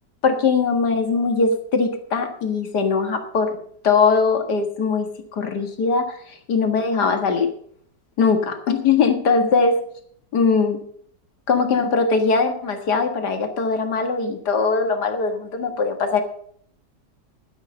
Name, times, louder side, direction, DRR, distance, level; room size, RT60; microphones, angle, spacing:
voice 1, 0.2-3.6 3.8-7.5 8.2-9.8 10.3-10.8 11.5-16.2, left 4 dB, 65° left, 6 dB, 2.2 m, -21 dB
11.0 x 10.5 x 6.4 m, 0.62 s
omnidirectional pair, 1.9 m